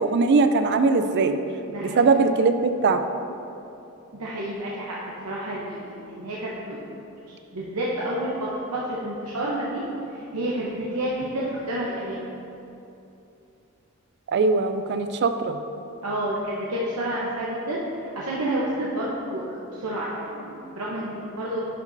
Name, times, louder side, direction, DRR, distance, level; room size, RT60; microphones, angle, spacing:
voice 1, 0.0-1.4 1.8-3.0 14.3-15.6, right 4 dB, 50° right, 8 dB, 0.3 m, -21 dB
voice 2, 1.7-2.1 4.2-5.0 5.2-6.8 7.1-7.2 7.5-9.8 10.1-12.3 16.0-17.8 18.1-21.6, right 1 dB, 90° right, -6 dB, 0.8 m, -29 dB
10.5 x 5.1 x 2.6 m, 2.8 s
head